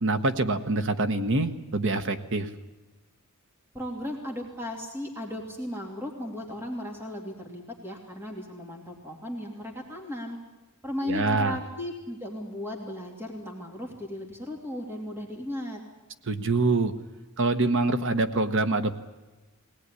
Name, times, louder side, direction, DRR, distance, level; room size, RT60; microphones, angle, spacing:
voice 1, 0.0-2.5 11.0-11.6 16.3-16.9 17.4-18.9, right 2 dB, 60° right, 9 dB, 1.3 m, -25 dB
voice 2, 3.7-10.4 10.8-15.8, left 1 dB, 10° right, 1 dB, 2.7 m, -36 dB
21.5 x 18.5 x 9.8 m, 1.1 s
head